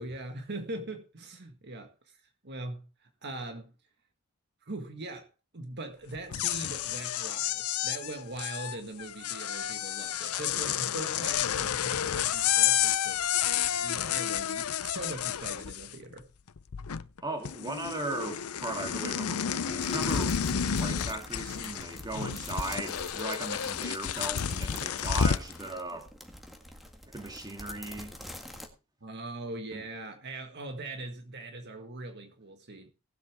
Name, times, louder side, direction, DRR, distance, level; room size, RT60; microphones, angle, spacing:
voice 1, 0.0-2.2 2.4-2.9 3.2-3.7 4.6-5.3 5.5-13.4 13.7-16.3 29.0-32.9, right 2 dB, 50° right, 1.6 m, -41 dB
sound 1, 6.2-16.2 16.5-17.2 17.4-25.5, left 9 dB, 85° left, 0.6 m, -30 dB
voice 2, 17.2-26.1 27.1-28.1 29.7-29.8, right 2 dB, 20° right, 2.3 m, -37 dB
sound 2, 19.8-28.7, equal, ahead, 1.8 m, -47 dB
19.0 x 8.0 x 3.5 m
head